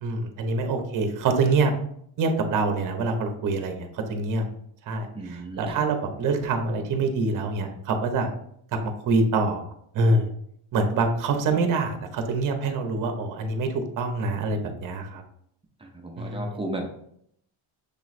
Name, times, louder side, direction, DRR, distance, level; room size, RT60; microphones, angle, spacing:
voice 1, 0.0-1.7 2.2-4.5 4.9-8.3 8.8-9.6 9.9-10.3 10.7-15.2 16.2-16.6, right 3 dB, 40° right, 5 dB, 0.7 m, -25 dB
voice 2, 5.1-5.8 15.8-16.9, right 2 dB, 15° right, 2 dB, 0.3 m, -34 dB
6.5 x 3.0 x 2.5 m, 0.70 s
cardioid pair, 145°, 50 cm